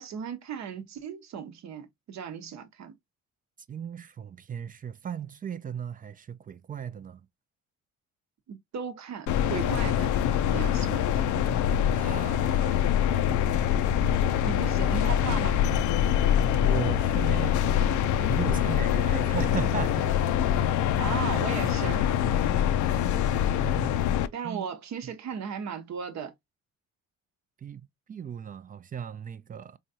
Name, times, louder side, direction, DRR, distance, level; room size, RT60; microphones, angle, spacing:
voice 1, 0.0-2.9 8.5-10.1 10.5-11.3 14.4-15.6 21.0-22.1 24.3-26.3, right 7 dB, 65° right, 0.8 m, -36 dB
voice 2, 3.7-7.3 10.5-10.9 11.9-13.3 16.5-20.3 22.5-22.8 23.6-24.2 24.4-24.7 25.0-25.1 27.6-29.8, right 8 dB, 30° right, 0.3 m, -37 dB
sound 1, 9.3-24.3, left 10 dB, 75° left, 0.5 m, -24 dB
3.6 x 3.1 x 2.7 m
cardioid pair, 90°, 30 cm